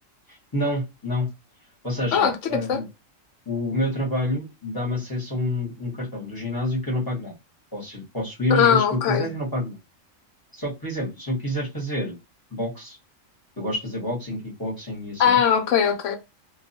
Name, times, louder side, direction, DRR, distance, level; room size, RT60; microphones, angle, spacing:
voice 1, 0.3-1.3 1.8-2.9 3.5-7.3 7.7-9.8 10.5-12.2 12.5-13.0 13.6-15.4, left 1 dB, 20° left, 0.9 m, -28 dB
voice 2, 8.5-9.3 15.2-16.2, left 8 dB, 75° left, 0.9 m, -20 dB
2.3 x 2.3 x 2.6 m
omnidirectional pair, 1.3 m